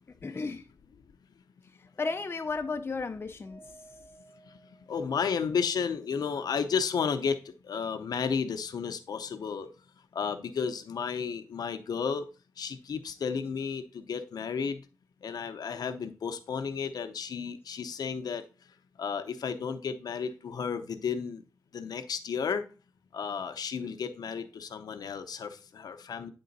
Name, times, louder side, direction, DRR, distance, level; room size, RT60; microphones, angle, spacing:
voice 1, 0.1-0.7 1.8-3.6, left 4 dB, 35° left, 0.6 m, -34 dB
Mallet percussion, 3.4-5.7, right 2 dB, 20° right, 4.1 m, -57 dB
voice 2, 4.9-9.7 10.1-12.3 12.6-14.8 15.2-18.4 19.0-21.4 21.7-22.6 23.1-26.3, left 6 dB, 80° left, 0.7 m, -32 dB
9.4 x 3.7 x 3.9 m
wide cardioid pair, 85°, 7 cm